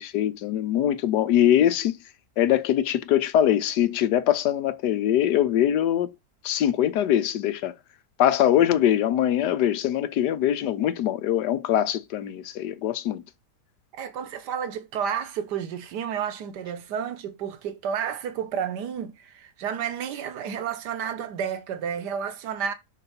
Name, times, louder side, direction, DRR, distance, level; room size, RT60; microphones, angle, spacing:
voice 1, 0.0-1.9 2.4-6.1 6.4-7.7 8.2-13.2, left 11 dB, 80° left, 1.3 m, -22 dB
voice 2, 13.9-22.7, right 8 dB, 80° right, 1.4 m, -31 dB
5.4 x 4.1 x 5.6 m
omnidirectional pair, 1.8 m